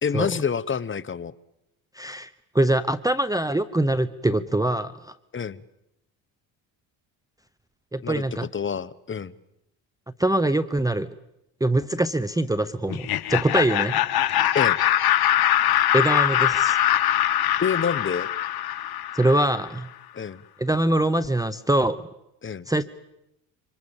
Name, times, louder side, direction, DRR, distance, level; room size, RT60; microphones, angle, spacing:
voice 1, 0.0-1.3 5.3-5.6 8.0-8.2 8.5-9.3 14.5-14.8 17.6-18.3 20.1-20.4 22.4-22.7, left 6 dB, 25° left, 15 dB, 1.1 m, -27 dB
voice 2, 2.0-2.3 2.5-5.1 7.9-8.5 10.2-11.1 11.6-14.0 15.6-16.8 19.1-19.9 20.6-22.0 22.7-22.8, right 1 dB, 10° right, 11 dB, 0.9 m, -23 dB
Laughter, 12.9-19.7, left 12 dB, 55° left, 1.4 m, -22 dB
26.5 x 25.5 x 7.3 m, 0.87 s
supercardioid pair, 85°, 44 cm